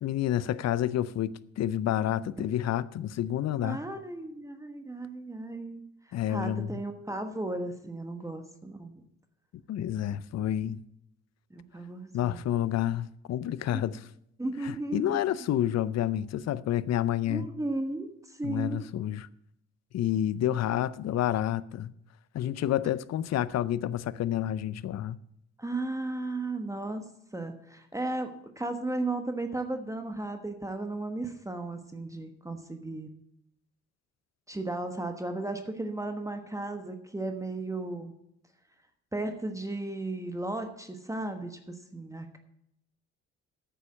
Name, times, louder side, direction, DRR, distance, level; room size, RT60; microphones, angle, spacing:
voice 1, 0.0-3.8 6.1-6.8 9.7-10.8 12.1-14.0 14.6-17.5 18.4-19.3 19.9-21.9 22.3-25.2, left 11 dB, 60° left, 0.6 m, -29 dB
voice 2, 3.6-8.9 11.5-12.4 13.7-13.8 14.4-15.2 17.3-18.8 25.6-27.0 27.3-28.3 28.6-33.1 34.5-38.1 39.1-42.4, right 2 dB, 10° right, 1.2 m, -35 dB
9.2 x 7.0 x 8.6 m
cardioid pair, 90°, 30 cm